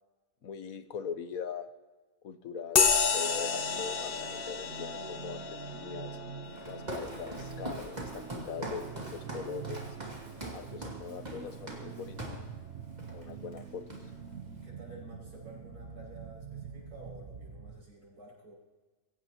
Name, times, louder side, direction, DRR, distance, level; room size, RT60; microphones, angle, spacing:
voice 1, 0.4-1.7 2.2-5.4 5.7-6.2 6.7-9.8 10.5-12.1 13.1-13.8, left 7 dB, 65° left, 10 dB, 1.3 m, -41 dB
sound 1, 2.8-10.7, left 6 dB, 45° left, 0.8 m, -32 dB
sound 2, 2.9-17.9, right 7 dB, 55° right, 1.1 m, -45 dB
Walk footsteps, 6.5-12.5 13.0-13.2 13.5-14.3, right 1 dB, 25° right, 2.3 m, -42 dB
voice 2, 14.4-18.5, right 2 dB, 90° right, -5 dB, 6.8 m, -51 dB
24.0 x 16.5 x 3.0 m, 1.3 s
omnidirectional pair, 1.7 m